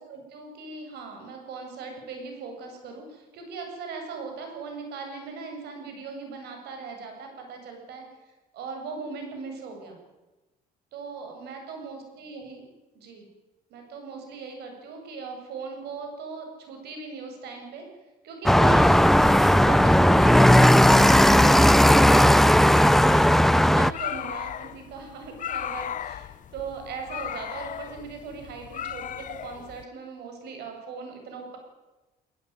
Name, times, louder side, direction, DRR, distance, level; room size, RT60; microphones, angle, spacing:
voice 1, 0.1-8.0 8.5-10.0 10.9-12.6 12.9-13.2 13.7-17.9 18.2-23.2 23.5-31.6, right 4 dB, 75° right, 4 dB, 7.8 m, -38 dB
sound 1, 18.5-23.9, equal, ahead, 0.7 m, -16 dB
sound 2, 23.8-29.8, left 10 dB, 50° left, 0.9 m, -36 dB
20.5 x 20.0 x 9.6 m, 1.1 s
cardioid pair, 110°, 17 cm